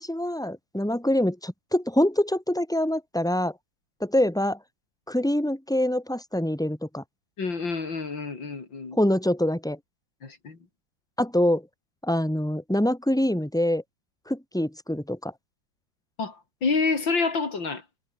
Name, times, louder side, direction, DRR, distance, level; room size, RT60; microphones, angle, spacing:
voice 1, 0.0-3.5 4.0-4.6 5.1-7.0 8.9-9.8 11.2-11.6 12.0-13.8 14.3-15.3, left 1 dB, ahead, 5.1 m, -25 dB
voice 2, 7.4-9.0 10.2-10.6 16.2-16.4 16.6-17.8, left 4 dB, 85° left, 4.4 m, -27 dB
omnidirectional pair, 2.0 m